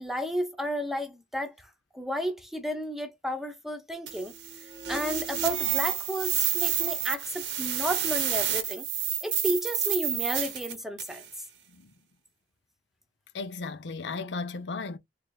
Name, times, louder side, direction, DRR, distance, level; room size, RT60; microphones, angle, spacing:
voice 1, 0.0-1.7 1.9-4.3 4.9-8.9 9.2-11.2, equal, ahead, 0.7 m, -32 dB
sound 1, 4.1-11.3, right 9 dB, 75° right, 0.9 m, -29 dB
voice 2, 13.3-15.0, left 4 dB, 85° left, 0.7 m, -35 dB
3.7 x 3.4 x 2.3 m
head